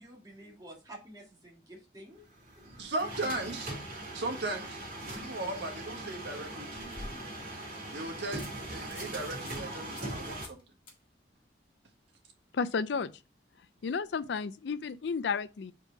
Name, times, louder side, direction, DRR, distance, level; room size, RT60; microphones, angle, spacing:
voice 1, 0.0-2.3, right 1 dB, 20° right, 1.9 m, -50 dB
sound 1, 2.3-10.5, right 1 dB, 50° right, 2.9 m, -41 dB
voice 2, 2.6-3.7 4.1-7.0 7.9-10.6, right 2 dB, 75° right, 1.4 m, -37 dB
sound 2, 6.2-7.5 8.0-8.1 8.4-8.5 8.8-9.1 9.5-9.6 10.0-10.1 10.4-10.6 10.9-11.0 14.1-14.2, left 2 dB, 30° left, 1.7 m, -48 dB
voice 3, 12.5-13.1 13.8-15.7, left 5 dB, 75° left, 0.4 m, -32 dB
5.2 x 4.5 x 4.6 m
head